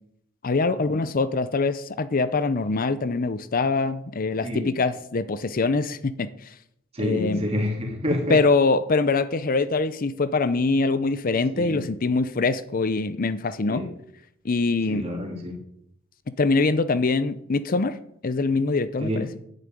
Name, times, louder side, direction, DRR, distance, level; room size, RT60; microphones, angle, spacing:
voice 1, 0.4-6.5 7.0-7.4 8.3-13.8 14.4-15.0 16.4-18.0 18.2-19.3, left 3 dB, 45° left, 14 dB, 0.6 m, -23 dB
voice 2, 6.9-8.4 11.5-11.9 13.7-13.9 14.9-15.6 19.0-19.3, left 1 dB, 30° right, 1 dB, 3.2 m, -28 dB
10.5 x 6.6 x 9.1 m, 0.72 s
head